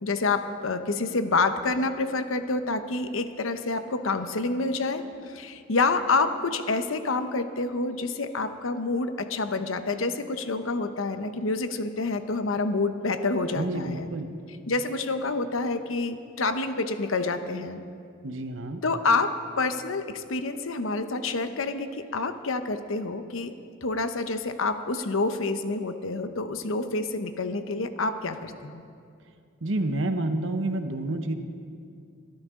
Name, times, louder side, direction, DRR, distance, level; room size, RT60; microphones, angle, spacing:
voice 1, 0.0-14.1 14.7-17.8 18.8-23.5 23.8-28.8, left 3 dB, 80° left, 9 dB, 0.9 m, -28 dB
voice 2, 13.5-14.3 18.2-18.8 29.6-31.3, right 2 dB, 70° right, 7 dB, 1.0 m, -29 dB
23.0 x 13.0 x 3.8 m, 2.4 s
head